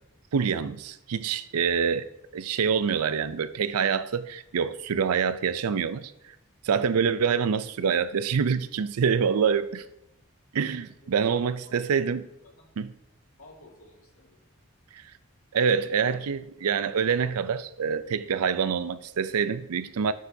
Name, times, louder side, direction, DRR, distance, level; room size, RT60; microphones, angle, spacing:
voice 1, 0.3-2.1 2.3-6.1 6.6-9.8 10.5-12.3 12.8-12.9 15.5-20.1, right 6 dB, 90° right, 0.4 m, -26 dB
voice 2, 1.3-1.7 11.0-11.1 11.6-11.8 12.4-12.7 13.4-14.4, left 2 dB, 75° left, 1.9 m, -54 dB
13.5 x 6.5 x 2.7 m
head